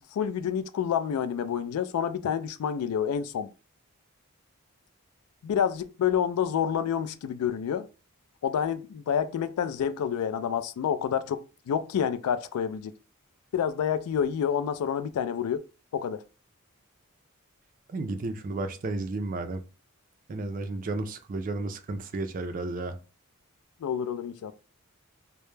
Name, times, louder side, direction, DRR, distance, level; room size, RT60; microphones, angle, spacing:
voice 1, 0.1-3.5 5.4-7.9 8.4-12.9 13.5-15.6 15.9-16.2 23.8-24.5, left 8 dB, 90° left, 0.3 m, -28 dB
voice 2, 17.9-19.6 20.3-23.0, right 2 dB, 40° right, 0.3 m, -32 dB
2.1 x 2.0 x 3.0 m
head